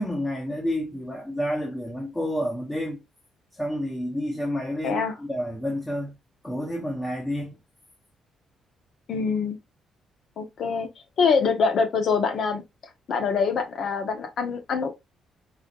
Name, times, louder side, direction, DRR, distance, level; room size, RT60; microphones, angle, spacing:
voice 1, 0.0-3.0 3.5-6.1 6.4-7.5, equal, 15° left, 1.1 m, -29 dB
voice 2, 4.8-5.2 9.1-9.6 10.4-10.9 11.2-12.6 13.1-14.9, left 5 dB, 60° left, 1.2 m, -24 dB
4.8 x 3.9 x 2.5 m
cardioid pair, 120°, 0 cm